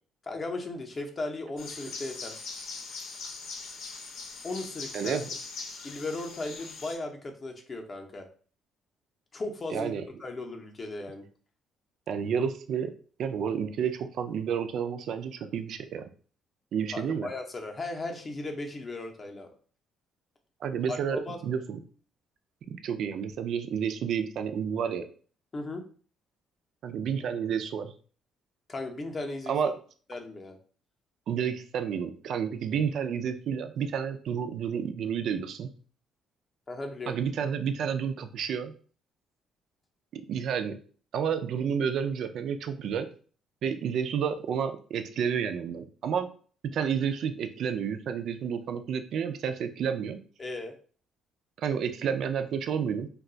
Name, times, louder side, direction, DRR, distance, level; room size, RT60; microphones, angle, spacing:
voice 1, 0.2-2.3 4.4-5.2 5.8-8.3 9.3-9.9 10.2-11.2 16.9-19.5 20.9-21.4 25.5-25.8 28.7-29.7 30.1-30.6 36.7-37.1 50.4-50.7, left 2 dB, 30° left, 3 dB, 0.6 m, -36 dB
sound 1, 1.6-7.0, left 4 dB, 70° left, 0.6 m, -41 dB
voice 2, 4.9-5.3 9.7-10.0 12.1-12.9 13.2-16.1 16.7-17.3 20.6-21.8 22.7-25.1 26.8-27.9 29.5-29.7 31.3-35.7 37.1-38.7 40.1-40.8 41.1-43.1 43.6-46.3 46.7-50.2 51.6-53.1, right 7 dB, 65° right, 8 dB, 0.3 m, -30 dB
2.3 x 2.2 x 3.8 m, 0.42 s
cardioid pair, 115°, 0 cm